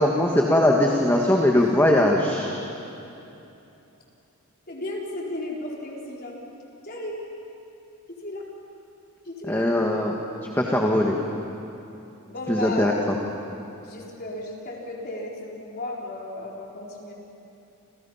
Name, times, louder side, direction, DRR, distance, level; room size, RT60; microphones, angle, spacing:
voice 1, 0.0-2.5 9.5-10.2 10.5-11.2 12.5-12.9, left 1 dB, 10° left, -1 dB, 1.7 m, -20 dB
voice 2, 4.7-6.4 6.8-7.2 8.2-8.4 9.2-9.7 12.3-13.0 13.8-17.1, left 1 dB, 45° left, -2 dB, 4.4 m, -34 dB
29.0 x 29.0 x 5.8 m, 2.8 s
head